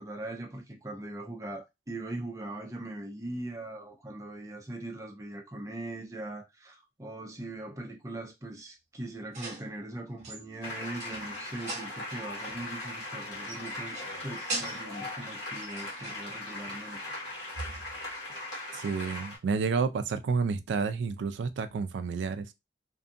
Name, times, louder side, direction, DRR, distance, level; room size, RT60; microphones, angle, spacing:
voice 1, 0.0-14.0 14.2-17.0, right 1 dB, 15° right, 0.5 m, -40 dB
sound 1, 9.3-9.8 10.2-12.0 12.4-12.8 13.0-13.1 13.4-14.2 14.5-15.0 15.6-16.3 17.5-18.1, right 2 dB, 40° right, 1.0 m, -41 dB
sound 2, 10.6-19.4, left 2 dB, 70° left, 1.3 m, -39 dB
voice 2, 18.7-22.5, right 5 dB, 75° right, 0.3 m, -30 dB
2.6 x 2.5 x 2.5 m
head